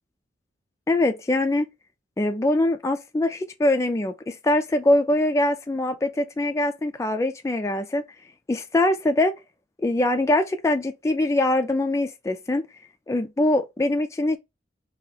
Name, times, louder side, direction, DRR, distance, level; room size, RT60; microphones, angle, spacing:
voice 1, 0.9-1.7 2.2-8.1 8.5-9.4 9.8-12.7 13.1-14.4, left 1 dB, 15° left, 0.3 m, -23 dB
2.8 x 2.7 x 3.8 m
head